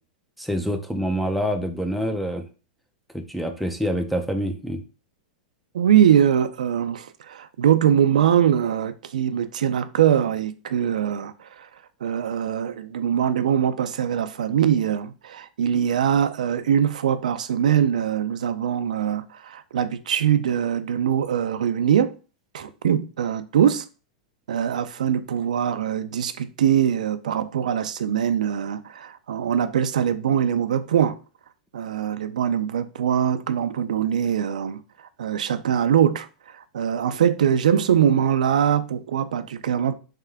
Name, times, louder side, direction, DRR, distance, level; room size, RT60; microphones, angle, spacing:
voice 1, 0.4-2.4 3.1-4.8, equal, ahead, 0.6 m, -26 dB
voice 2, 5.7-11.7 12.0-22.1 22.5-23.9 24.5-31.2 31.7-39.9, right 9 dB, 85° right, 0.4 m, -22 dB
3.6 x 3.4 x 3.3 m
hypercardioid pair, 125°, 4 cm